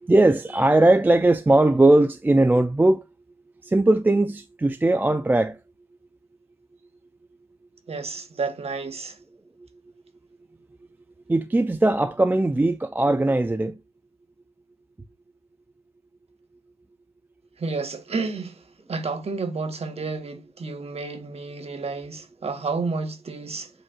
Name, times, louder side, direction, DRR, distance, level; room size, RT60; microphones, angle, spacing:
voice 1, 0.0-3.0 3.6-5.6 11.3-13.8, right 2 dB, 10° right, 0.3 m, -19 dB
voice 2, 7.9-9.2 17.6-18.6 18.9-23.7, right 4 dB, 30° right, 1.0 m, -30 dB
7.8 x 3.0 x 2.3 m
cardioid pair, 90°, 20 cm